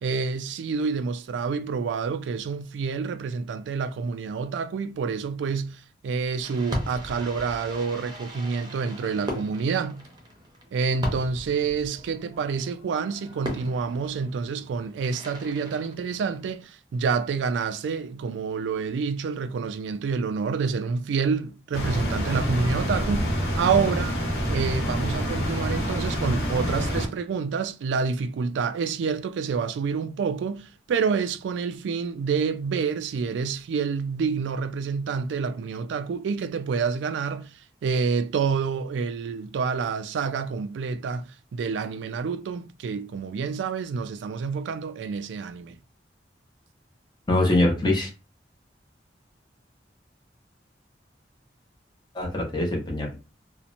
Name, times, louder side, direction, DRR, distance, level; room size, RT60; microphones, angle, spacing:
voice 1, 0.0-10.0 10.7-24.2 24.5-37.5 37.8-45.8, right 5 dB, 85° right, 0.3 m, -28 dB
Fireworks, 6.4-16.6, equal, 25° right, 0.6 m, -38 dB
sound 1, 21.7-27.1, equal, 60° left, 0.9 m, -27 dB
voice 2, 47.3-48.1 52.1-53.1, left 1 dB, 25° left, 0.6 m, -23 dB
2.8 x 2.0 x 2.5 m
head